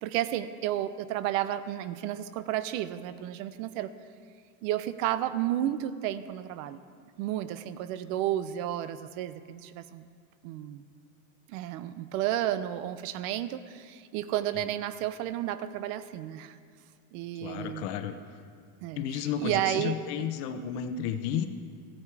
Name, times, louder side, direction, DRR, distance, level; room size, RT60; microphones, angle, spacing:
voice 1, 0.0-3.9 4.6-6.8 7.2-10.1 10.4-10.8 11.5-16.6 17.1-17.9 18.8-20.3, right 12 dB, 75° right, 14 dB, 0.7 m, -32 dB
voice 2, 17.4-18.1 19.0-21.5, left 8 dB, 55° left, 9 dB, 0.8 m, -32 dB
14.0 x 8.8 x 4.7 m, 2.1 s
cardioid pair, 180°, 41 cm